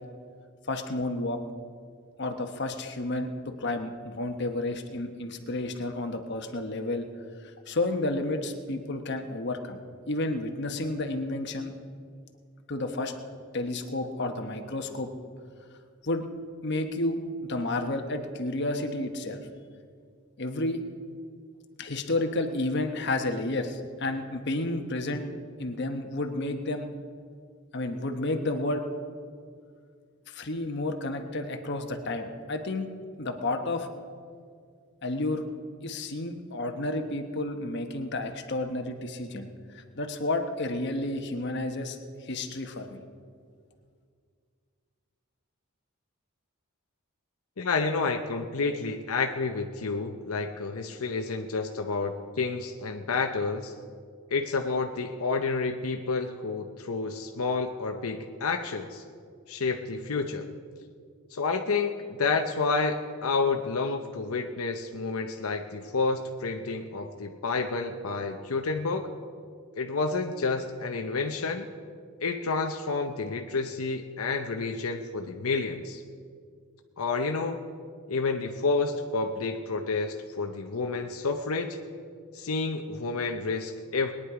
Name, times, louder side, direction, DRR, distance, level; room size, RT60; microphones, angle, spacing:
voice 1, 0.7-1.4 2.2-7.1 7.7-9.8 10.1-11.7 12.7-13.1 13.5-15.1 16.0-16.2 16.6-19.5 20.4-20.8 21.8-25.3 25.6-26.9 27.7-28.8 30.3-32.9 33.2-33.9 35.0-35.4 35.8-39.5 39.7-43.0, left 2 dB, 55° left, 5 dB, 1.1 m, -31 dB
voice 2, 47.6-53.7 54.3-59.0 59.5-60.5 61.3-69.1 69.8-71.7 72.2-76.0 77.0-77.6 78.1-81.8 82.3-84.1, left 4 dB, 80° left, 5 dB, 0.7 m, -29 dB
21.0 x 9.8 x 4.9 m, 2.1 s
head